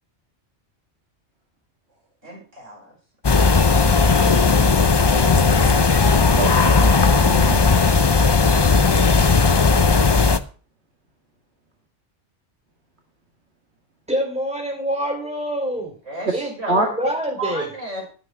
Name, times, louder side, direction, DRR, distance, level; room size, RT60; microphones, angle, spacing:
voice 1, 2.2-3.0 16.0-18.1, right 2 dB, 70° right, -1 dB, 6.0 m, -33 dB
sound 1, 3.2-10.4, left 4 dB, 35° left, 0.4 m, -16 dB
voice 2, 5.1-7.6 16.7-16.9, right 2 dB, 55° right, 2 dB, 2.2 m, -27 dB
voice 3, 14.1-15.9 16.3-17.6, equal, 5° right, 2 dB, 3.4 m, -26 dB
13.0 x 8.9 x 4.8 m, 0.39 s
omnidirectional pair, 1.3 m